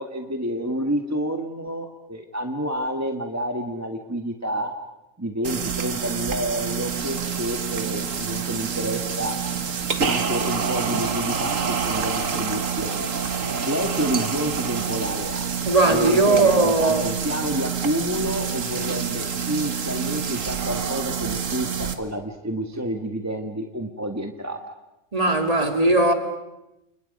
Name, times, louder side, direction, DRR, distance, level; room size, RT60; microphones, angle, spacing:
voice 1, 0.0-4.7 5.2-9.4 10.1-13.1 13.7-15.5 15.9-24.6, equal, 15° right, 1.5 m, -29 dB
sound 1, 5.4-22.0, right 6 dB, 80° right, 1.9 m, -27 dB
voice 2, 15.7-17.1 25.1-26.1, right 2 dB, 30° right, 2.4 m, -18 dB
29.5 x 29.0 x 5.3 m
omnidirectional pair, 1.3 m